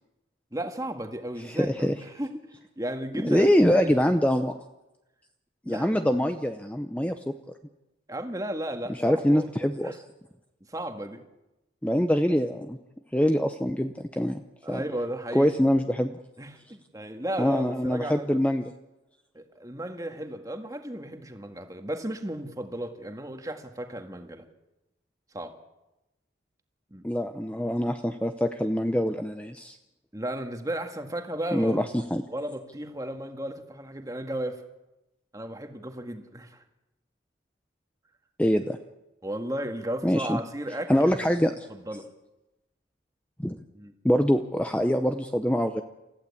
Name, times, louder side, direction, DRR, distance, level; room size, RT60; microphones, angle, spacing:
voice 1, 0.5-2.4 2.8-3.9 5.6-5.9 8.1-9.9 10.7-11.2 14.6-15.5 16.4-18.4 19.3-24.5 25.3-25.5 26.9-27.0 30.1-31.8 32.3-34.6 35.3-36.6 39.2-41.1 41.7-42.1 43.7-43.9, right 1 dB, 20° right, 6 dB, 1.7 m, -34 dB
voice 2, 1.4-1.9 3.2-4.6 5.7-7.3 8.9-10.0 11.8-12.8 13.1-14.4 14.7-14.8 15.3-16.1 17.4-18.7 27.0-29.8 31.5-32.2 38.4-38.8 40.0-40.4 40.9-41.7 43.4-43.6 44.0-45.8, equal, 5° left, 7 dB, 0.7 m, -24 dB
28.5 x 15.0 x 8.5 m, 0.99 s
head